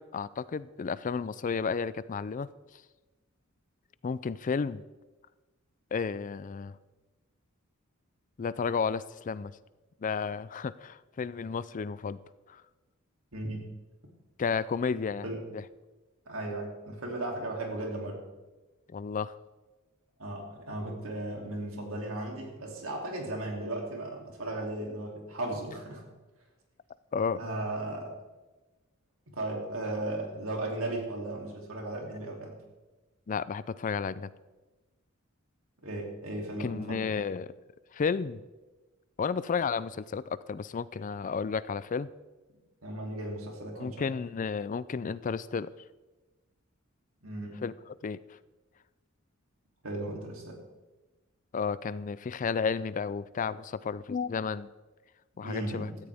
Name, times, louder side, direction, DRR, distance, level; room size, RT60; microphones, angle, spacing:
voice 1, 0.0-2.5 4.0-4.8 5.9-6.8 8.4-9.5 10.0-12.2 12.5-12.6 14.4-15.3 15.5-15.6 18.9-19.4 27.1-27.4 33.3-34.3 36.6-37.5 37.9-38.4 39.2-42.1 43.8-45.7 47.6-47.7 48.0-48.2 51.5-54.7 55.4-55.9, left 5 dB, 40° left, 17 dB, 0.4 m, -32 dB
voice 2, 13.3-13.7 15.2-15.4 16.3-18.2 20.2-26.0 27.4-28.1 29.3-32.6 35.8-37.1 42.8-44.1 47.2-47.6 49.8-50.6 55.4-56.0, right 1 dB, 75° right, 1 dB, 3.0 m, -36 dB
16.5 x 13.5 x 3.5 m, 1.2 s
head